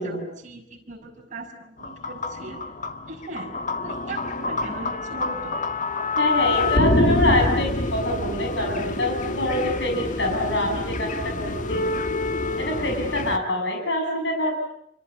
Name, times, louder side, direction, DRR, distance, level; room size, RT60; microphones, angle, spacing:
voice 1, 0.4-2.6 3.1-3.6 3.8-5.6, right 2 dB, 45° right, 0 dB, 5.9 m, -38 dB
sound 1, 1.8-13.4, left 2 dB, 45° left, 1.7 m, -26 dB
voice 2, 6.2-11.9 12.6-14.6, left 1 dB, 75° left, 2 dB, 7.3 m, -25 dB
27.0 x 25.0 x 8.5 m, 0.73 s
head